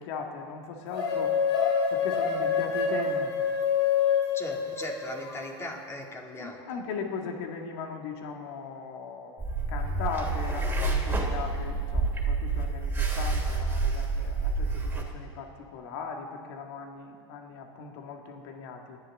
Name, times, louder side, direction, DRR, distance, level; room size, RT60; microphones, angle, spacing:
voice 1, 0.0-1.3 1.9-3.3 6.4-19.0, left 5 dB, 65° left, 2 dB, 2.2 m, -38 dB
sound 1, 0.9-5.4, left 6 dB, 90° left, 2.9 m, -26 dB
voice 2, 4.3-6.6, left 1 dB, 20° left, 0 dB, 2.7 m, -38 dB
sound 2, 9.4-15.0, right 3 dB, 15° right, 3.0 m, -28 dB
28.0 x 11.5 x 3.8 m, 2.1 s
hypercardioid pair, 100°, 14 cm